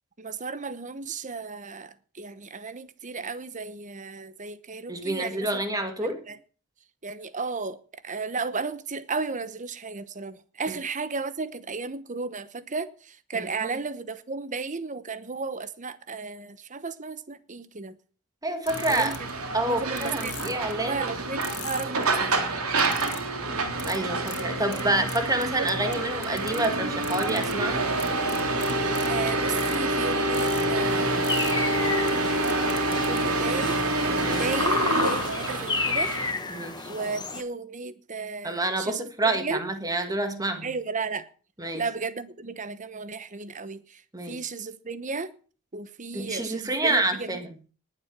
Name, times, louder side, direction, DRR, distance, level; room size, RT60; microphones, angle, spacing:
voice 1, 0.2-5.5 6.0-6.4 7.0-18.0 18.9-20.6 20.8-22.4 29.1-31.3 33.1-36.1 36.9-39.6 40.6-41.3 41.7-45.3 45.7-47.4, right 4 dB, 35° right, 1.0 m, -34 dB
voice 2, 4.9-6.2 10.7-10.8 13.3-13.8 18.4-19.1 19.5-21.0 23.9-27.9 34.2-34.4 36.5-36.9 38.4-40.7 41.6-41.8 44.1-44.4 46.1-47.5, right 2 dB, 15° right, 1.8 m, -28 dB
sound 1, 18.7-19.3 20.0-20.7 21.4-22.0 22.8-23.2 23.8-24.0 24.3-24.4 24.7-24.8 25.1-25.9 26.2-26.7 27.0-27.5 28.0-29.1 29.4-29.8 30.3-30.6 31.2-31.5 32.1-32.2 32.4-33.2, left 13 dB, 85° left, 2.1 m, -40 dB
sound 2, 18.7-36.3, right 2 dB, 70° right, 3.2 m, -27 dB
sound 3, 30.8-37.4, left 3 dB, 20° left, 1.7 m, -31 dB
19.5 x 7.7 x 6.0 m
head